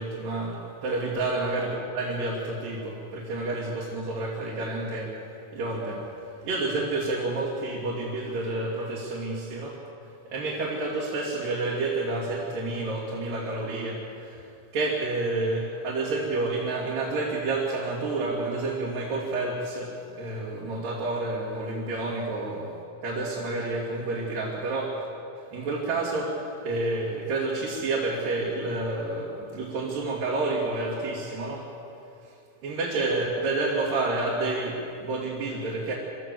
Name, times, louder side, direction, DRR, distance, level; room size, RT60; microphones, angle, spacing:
voice 1, 0.0-5.1 5.5-6.1 6.4-9.8 10.3-14.4 14.7-25.1 25.5-31.7 32.6-35.9, right 2 dB, 65° right, -5 dB, 4.0 m, -29 dB
25.5 x 14.0 x 7.6 m, 2.7 s
omnidirectional pair, 4.2 m